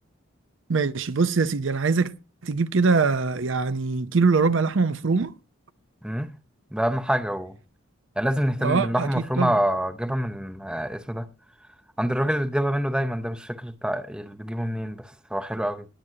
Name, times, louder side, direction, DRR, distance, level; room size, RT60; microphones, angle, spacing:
voice 1, 0.7-2.1 2.4-5.3 8.6-9.5, right 4 dB, 65° right, 0.6 m, -23 dB
voice 2, 6.0-6.3 6.7-7.5 8.2-11.3 12.0-15.9, equal, 5° right, 0.6 m, -26 dB
20.0 x 8.7 x 2.8 m
head